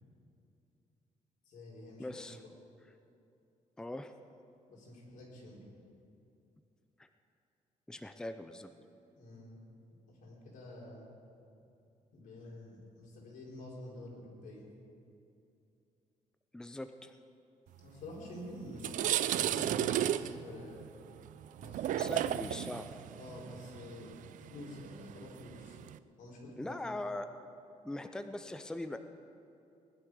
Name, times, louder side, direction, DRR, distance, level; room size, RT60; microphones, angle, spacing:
voice 1, 1.5-2.3 4.7-5.7 9.2-9.6 10.1-11.0 12.1-14.7 17.8-20.8 21.6-22.3 22.6-22.7 23.2-25.8 26.2-26.8, left 1 dB, 90° left, -4 dB, 4.4 m, -48 dB
voice 2, 2.0-2.4 3.8-4.1 7.9-8.7 16.5-17.1 22.0-22.9 26.6-27.3 27.8-29.0, left 1 dB, 5° left, 8 dB, 0.5 m, -41 dB
sound 1, 18.2-18.3 18.7-26.0, right 11 dB, 75° right, 0.4 m, -34 dB
20.0 x 11.5 x 4.9 m, 2.7 s
cardioid pair, 145°, 13 cm